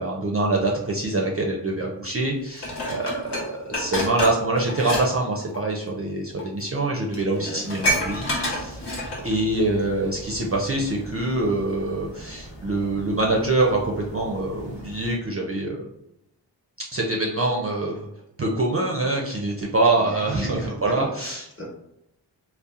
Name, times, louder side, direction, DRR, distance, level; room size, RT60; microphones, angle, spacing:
voice 1, 0.0-8.9 9.2-15.8 16.9-18.1 18.4-21.5, right 2 dB, 35° right, -1 dB, 0.4 m, -25 dB
Dishes pots and pans, 2.6-5.1 5.3-5.6 6.4-6.5 6.8-6.9 7.1-9.4 9.8-9.9, equal, 65° left, 0.9 m, -28 dB
sound 1, 7.8-15.2, right 1 dB, 80° left, 1.4 m, -41 dB
voice 2, 19.9-21.7, equal, 30° left, -2 dB, 1.0 m, -36 dB
2.7 x 2.1 x 2.4 m, 0.82 s
cardioid pair, 40°, 44 cm